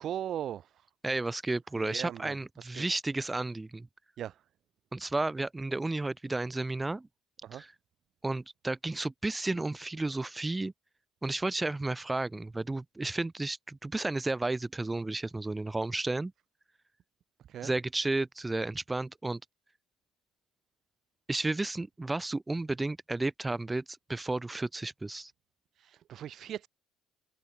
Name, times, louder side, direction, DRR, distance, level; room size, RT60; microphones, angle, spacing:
voice 1, 0.0-0.9 1.8-2.9 4.2-4.4 7.4-7.6 17.5-17.7 25.8-26.7, right 10 dB, 55° right, 7.3 m, -39 dB
voice 2, 1.0-3.9 4.9-7.1 7.5-7.7 8.2-10.7 11.2-16.3 17.6-19.4 21.3-25.3, right 2 dB, 15° right, 6.1 m, -32 dB
supercardioid pair, 90°, 0 cm